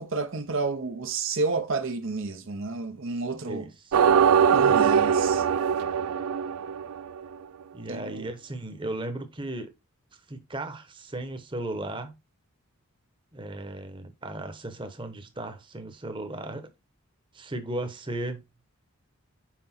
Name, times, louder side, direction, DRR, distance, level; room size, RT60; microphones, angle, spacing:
voice 1, 0.0-3.7 4.5-5.4 7.9-8.3, right 3 dB, 60° right, 0.7 m, -31 dB
voice 2, 3.4-4.0 4.6-4.9 7.7-9.7 10.1-12.1 13.3-16.7 17.3-18.4, right 1 dB, 20° right, 1.0 m, -36 dB
sound 1, 3.9-7.2, right 7 dB, 80° right, 0.4 m, -21 dB
5.9 x 5.1 x 4.3 m
head